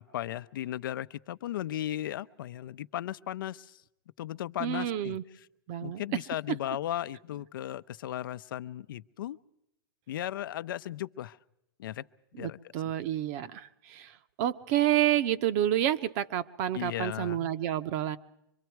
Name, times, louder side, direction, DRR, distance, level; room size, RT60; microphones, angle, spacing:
voice 1, 0.0-3.8 4.2-5.2 5.8-9.4 10.1-11.4 11.8-12.0 12.4-12.6 16.7-17.5, left 12 dB, 70° left, 14 dB, 0.7 m, -36 dB
voice 2, 4.6-5.2 5.7-6.0 12.3-18.2, right 12 dB, 45° right, 12 dB, 0.9 m, -29 dB
25.5 x 22.5 x 4.6 m, 0.82 s
hypercardioid pair, 135°, 12 cm